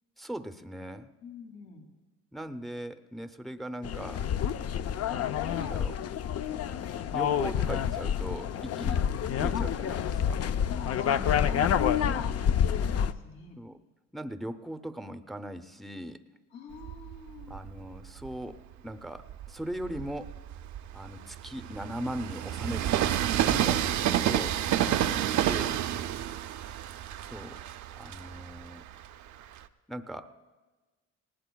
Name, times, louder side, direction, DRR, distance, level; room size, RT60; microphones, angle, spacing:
voice 1, 0.2-1.1 2.3-4.3 5.4-6.0 7.1-10.5 13.6-13.8 14.1-16.2 17.5-20.3 20.9-22.9 23.5-25.8 27.2-27.6 28.0-28.8 29.9-30.3, right 1 dB, ahead, 9 dB, 0.6 m, -39 dB
voice 2, 1.2-1.9 10.7-13.6 16.5-17.6 24.7-25.1, left 5 dB, 80° left, -1 dB, 2.5 m, -45 dB
sound 1, 3.8-13.1, left 8 dB, 55° left, 0.5 m, -28 dB
Train, 16.8-18.4 19.0-29.6, right 11 dB, 70° right, 0.6 m, -30 dB
19.5 x 18.0 x 2.3 m, 1.3 s
cardioid pair, 90°, 30 cm